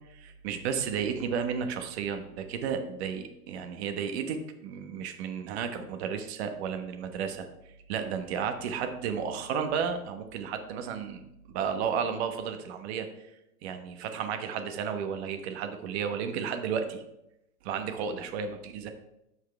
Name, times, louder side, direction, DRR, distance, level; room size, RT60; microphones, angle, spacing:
voice 1, 0.1-7.5 7.9-11.2 11.5-13.1 13.6-17.0 17.6-18.9, right 7 dB, 40° right, 7 dB, 1.2 m, -33 dB
14.0 x 4.9 x 3.3 m, 0.84 s
hypercardioid pair, 135°, 47 cm